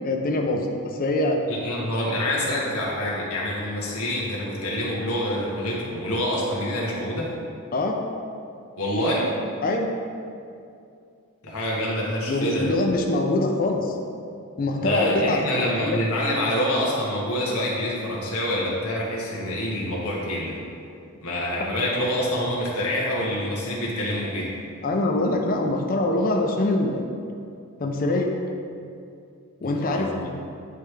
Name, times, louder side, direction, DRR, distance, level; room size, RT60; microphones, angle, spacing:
voice 1, 0.0-1.4 7.7-8.0 9.6-9.9 12.3-14.0 14.6-15.6 15.8-16.0 24.8-27.0 27.8-28.3 29.6-30.3, left 2 dB, 40° left, 2 dB, 0.5 m, -24 dB
voice 2, 1.5-7.3 8.8-9.4 11.4-12.7 14.8-20.6 21.2-24.5 29.6-30.2, left 1 dB, 80° left, -4 dB, 1.3 m, -26 dB
9.3 x 3.3 x 3.2 m, 2.5 s
head